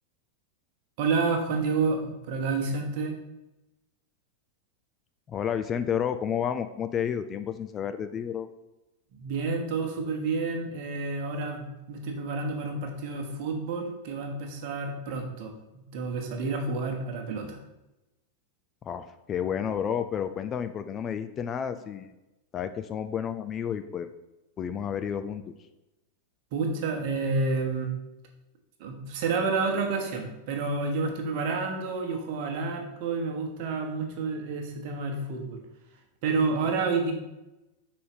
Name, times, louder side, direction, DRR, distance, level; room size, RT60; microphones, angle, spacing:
voice 1, 1.0-3.2 9.1-17.6 26.5-27.9 28.8-35.6 36.2-37.1, right 4 dB, 45° right, 3 dB, 1.2 m, -29 dB
voice 2, 5.3-8.5 18.8-22.1 22.5-24.1 24.6-25.5, left 8 dB, 25° left, 9 dB, 0.3 m, -31 dB
5.4 x 4.3 x 4.8 m, 0.98 s
figure-of-eight pair, 90°, 0 cm